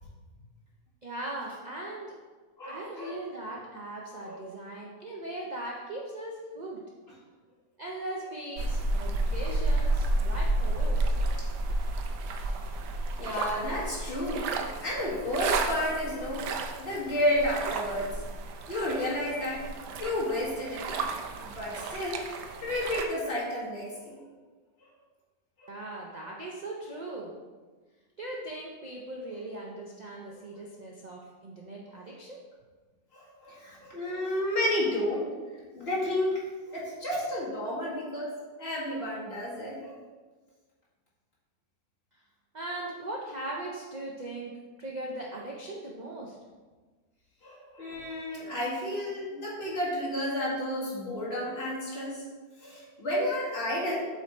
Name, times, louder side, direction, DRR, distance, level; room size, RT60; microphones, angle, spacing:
voice 1, 1.0-2.1 2.7-6.8 7.8-11.1 25.7-27.3 28.2-32.4 42.5-44.5 44.8-46.4, right 1 dB, 60° right, -2 dB, 0.4 m, -39 dB
voice 2, 2.6-3.2 4.2-4.4 10.8-11.3 13.2-18.1 18.7-21.2 21.4-24.2 25.6-25.7 30.3-30.4 33.1-35.3 35.7-36.4 36.7-38.3 38.6-40.0 47.4-52.2 52.6-54.1, left 1 dB, 35° left, -7 dB, 2.2 m, -32 dB
sound 1, 8.6-23.1, right 2 dB, 80° right, 1.2 m, -31 dB
7.8 x 3.3 x 4.3 m, 1.4 s
omnidirectional pair, 1.8 m